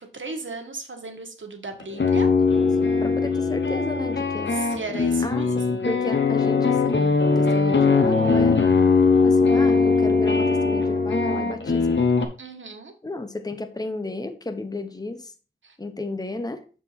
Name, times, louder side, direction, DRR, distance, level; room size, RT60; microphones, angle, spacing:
voice 1, 0.0-2.3 4.5-5.8 12.4-12.9 15.6-15.7, right 3 dB, 70° right, 1.4 m, -35 dB
sound 1, 1.8-12.3, left 4 dB, 60° left, 1.1 m, -20 dB
voice 2, 2.4-4.5 5.2-8.7 9.2-12.0 13.0-15.3 15.8-16.6, left 2 dB, 20° left, 0.9 m, -33 dB
6.9 x 4.6 x 4.1 m
wide cardioid pair, 50°, 21 cm